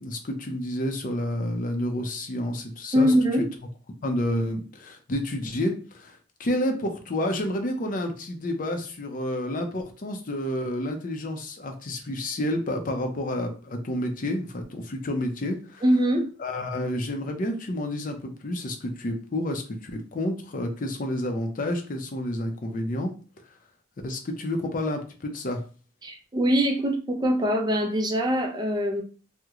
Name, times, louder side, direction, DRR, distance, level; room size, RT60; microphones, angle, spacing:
voice 1, 0.0-3.1 4.0-15.8 16.4-23.1 24.0-25.6, left 1 dB, 45° left, 5 dB, 0.5 m, -30 dB
voice 2, 2.9-3.5 15.8-16.3 26.0-29.0, equal, 20° right, 3 dB, 0.4 m, -23 dB
2.9 x 2.1 x 3.6 m, 0.37 s
head